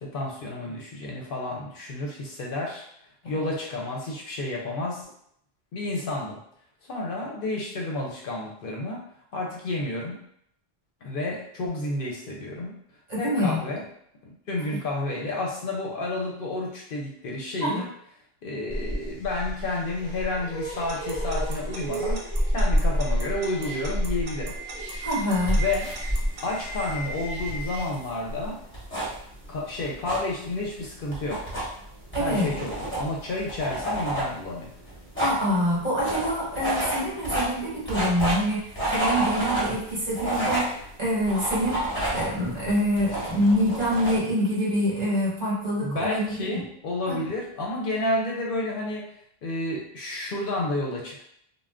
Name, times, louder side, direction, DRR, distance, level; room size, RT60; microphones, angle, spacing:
voice 1, 0.0-2.9 3.2-5.1 5.7-6.4 6.8-9.0 9.3-10.2 11.0-12.8 13.2-13.8 14.5-17.8 18.4-24.6 25.6-25.9 26.4-28.6 29.5-31.5 32.2-34.7 45.8-49.1 49.4-51.2, left 2 dB, 65° left, -2 dB, 0.7 m, -30 dB
voice 2, 13.1-13.6 17.6-17.9 25.0-25.6 32.1-32.5 35.2-40.7 41.0-41.8 42.1-46.6 47.1-47.2, equal, 40° right, -7 dB, 1.1 m, -26 dB
sound 1, 18.7-27.8, equal, 15° right, 0.8 m, -29 dB
Alarm / Clock, 20.9-26.4, right 3 dB, 75° right, 0.8 m, -41 dB
sound 2, 25.3-44.2, right 1 dB, 10° left, 0.9 m, -31 dB
2.4 x 2.1 x 3.4 m, 0.70 s
omnidirectional pair, 1.0 m